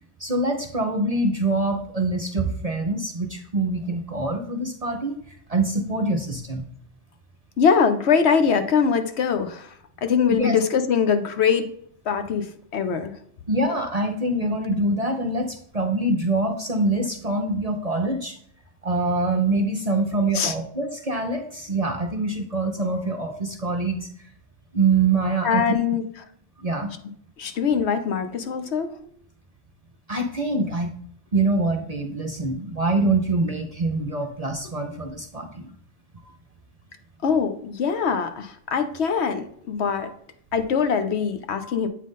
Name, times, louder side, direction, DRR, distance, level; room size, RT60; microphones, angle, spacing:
voice 1, 0.2-5.2 5.5-6.6 10.3-10.6 13.5-18.4 18.8-24.1 24.7-25.6 26.6-26.9 30.1-30.9 31.3-35.7 41.6-41.7, right 2 dB, 40° right, 4 dB, 0.6 m, -24 dB
voice 2, 7.6-9.7 10.0-11.7 12.0-13.1 20.3-20.5 25.4-26.0 27.4-28.9 37.2-40.1 40.5-41.9, left 6 dB, 65° left, 9 dB, 0.9 m, -22 dB
8.3 x 3.9 x 3.6 m, 0.66 s
omnidirectional pair, 1.2 m